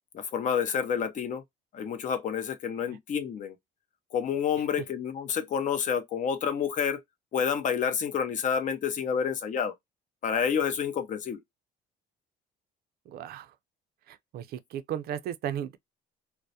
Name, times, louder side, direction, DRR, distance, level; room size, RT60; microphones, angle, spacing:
voice 1, 0.1-1.4 1.7-3.6 4.1-7.0 7.3-9.7 10.2-11.4, left 7 dB, 45° left, 0.6 m, -29 dB
voice 2, 13.1-13.5 14.1-15.8, right 10 dB, 60° right, 0.4 m, -35 dB
2.2 x 2.1 x 2.6 m
cardioid pair, 110°, 18 cm